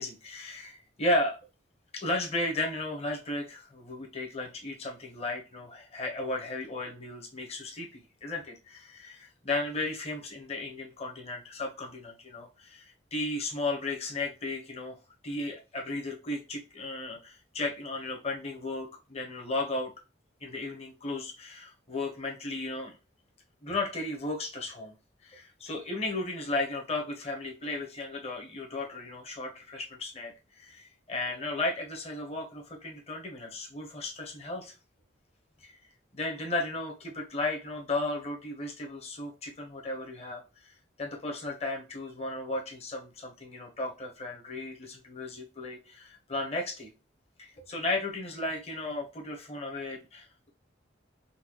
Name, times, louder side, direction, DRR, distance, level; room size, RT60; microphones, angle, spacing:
voice 1, 0.0-1.4 1.9-15.0 15.2-19.9 20.4-23.0 23.6-24.9 25.2-34.7 35.6-35.7 36.1-40.7 41.0-46.9 47.4-50.5, left 2 dB, 35° left, 1 dB, 0.8 m, -35 dB
4.0 x 2.2 x 2.9 m, 0.29 s
head